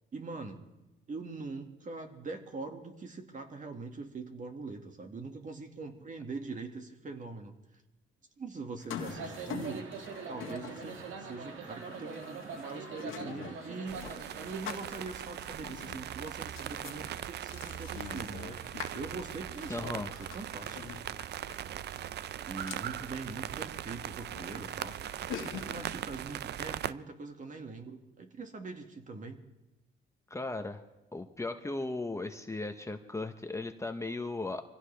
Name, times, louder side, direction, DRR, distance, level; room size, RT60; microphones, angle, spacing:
voice 1, 0.1-0.6 1.1-7.5 8.4-9.9 10.3-18.6 18.9-20.8 21.6-21.8 22.5-25.0 25.5-29.4, right 3 dB, 40° right, 4 dB, 2.0 m, -42 dB
sound 1, 8.8-26.0, left 7 dB, 85° left, 1.7 m, -46 dB
sound 2, 9.1-15.1, right 5 dB, 80° right, 1.8 m, -43 dB
sound 3, 13.9-26.9, right 11 dB, 60° right, 0.5 m, -40 dB
voice 2, 19.7-20.2 30.3-30.8 31.1-34.6, left 2 dB, 15° left, 7 dB, 1.0 m, -37 dB
24.5 x 16.0 x 3.4 m, 1.0 s
cardioid pair, 90°, 20 cm